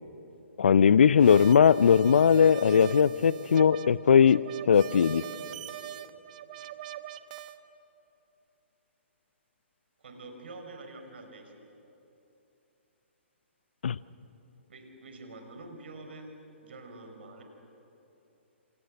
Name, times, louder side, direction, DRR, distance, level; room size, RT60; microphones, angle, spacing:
voice 1, 0.6-4.4 4.7-5.2 13.8-14.0, left 7 dB, 60° left, 18 dB, 0.7 m, -19 dB
sound 1, 1.2-7.6, right 12 dB, 40° right, 1.0 m, -43 dB
voice 2, 10.0-11.7 14.7-16.3 16.6-17.4, right 2 dB, 60° right, 5 dB, 4.9 m, -46 dB
28.5 x 26.5 x 6.5 m, 2.9 s
figure-of-eight pair, 125°, 7 cm